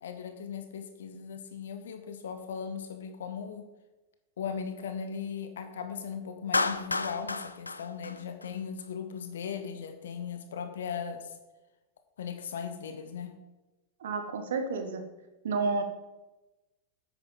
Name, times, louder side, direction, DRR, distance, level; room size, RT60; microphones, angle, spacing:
voice 1, 0.0-3.7 4.4-11.3 12.2-13.4, left 7 dB, 65° left, 8 dB, 0.8 m, -38 dB
Clapping, 6.5-8.8, left 3 dB, 80° left, 0.4 m, -31 dB
voice 2, 14.0-15.0 15.4-15.8, right 4 dB, 60° right, 7 dB, 1.2 m, -30 dB
9.7 x 8.3 x 3.9 m, 1.1 s
figure-of-eight pair, 90°, 0 cm